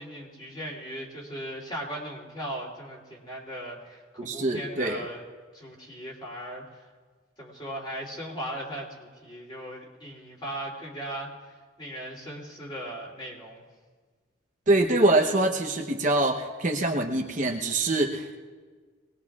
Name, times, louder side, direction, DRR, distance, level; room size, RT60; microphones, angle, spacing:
voice 1, 0.0-5.2 5.5-6.6 7.4-11.3 11.8-13.7, equal, 25° left, -3 dB, 3.0 m, -38 dB
voice 2, 4.2-5.0 14.7-18.4, right 2 dB, 40° right, 1 dB, 0.9 m, -24 dB
24.0 x 19.5 x 2.4 m, 1.5 s
head